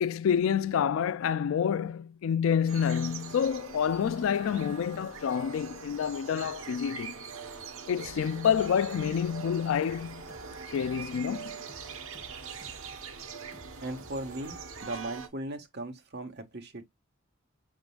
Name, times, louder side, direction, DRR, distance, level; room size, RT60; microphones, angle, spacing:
voice 1, 0.0-7.2 7.9-10.3 10.7-11.5, left 7 dB, 70° left, 0.3 m, -28 dB
sound 1, 2.7-15.3, right 5 dB, 75° right, 1.0 m, -43 dB
sound 2, 8.0-15.2, equal, 10° left, 4.1 m, -54 dB
voice 2, 13.8-16.9, right 1 dB, 50° right, 1.1 m, -38 dB
5.9 x 3.6 x 2.2 m
head